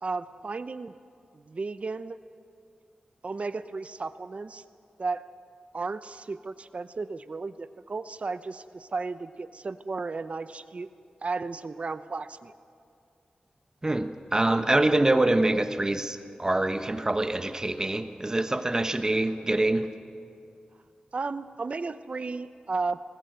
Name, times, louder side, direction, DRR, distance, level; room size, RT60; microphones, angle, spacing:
voice 1, 0.0-0.9 1.3-2.2 3.2-4.6 5.0-5.2 5.7-10.9 11.2-12.5 21.1-23.0, right 4 dB, 50° right, 13 dB, 0.7 m, -34 dB
voice 2, 13.8-19.9, right 2 dB, 25° right, 9 dB, 1.2 m, -25 dB
20.5 x 19.5 x 7.9 m, 2.4 s
wide cardioid pair, 85°, 3 cm